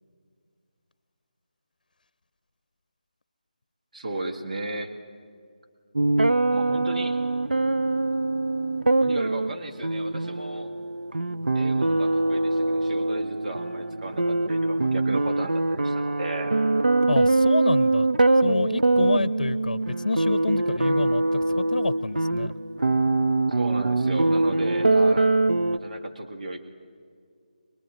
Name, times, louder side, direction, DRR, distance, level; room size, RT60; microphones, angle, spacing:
voice 1, 3.9-4.9 6.5-7.2 9.0-10.7 11.5-16.5 23.5-25.3 25.7-26.6, right 2 dB, 60° right, 4 dB, 1.8 m, -35 dB
sound 1, 6.0-25.8, right 2 dB, 90° right, 0.7 m, -23 dB
voice 2, 17.1-18.1 18.4-22.5, left 3 dB, 75° left, 17 dB, 0.7 m, -28 dB
24.5 x 21.0 x 8.9 m, 2.2 s
figure-of-eight pair, 165°, 5 cm